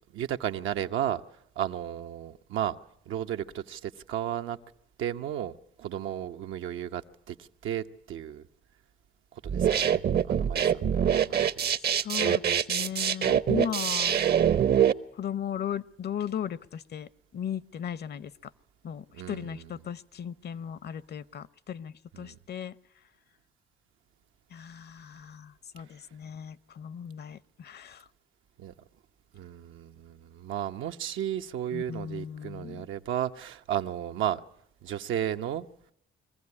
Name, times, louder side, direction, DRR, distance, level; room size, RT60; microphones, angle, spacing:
voice 1, 0.1-1.2 1.6-2.8 3.1-4.6 5.0-5.5 5.8-8.5 9.4-10.9 11.1-11.7 19.1-19.7 22.1-22.4 28.6-28.7 29.3-34.4 34.8-35.7, right 10 dB, 80° right, 0.9 m, -34 dB
sound 1, 9.5-14.9, right 9 dB, 55° right, 0.8 m, -24 dB
voice 2, 12.0-14.2 15.1-18.5 18.8-22.7 24.5-28.1 31.7-32.9, left 8 dB, 55° left, 0.8 m, -37 dB
22.5 x 15.0 x 9.7 m
cardioid pair, 90°, 20 cm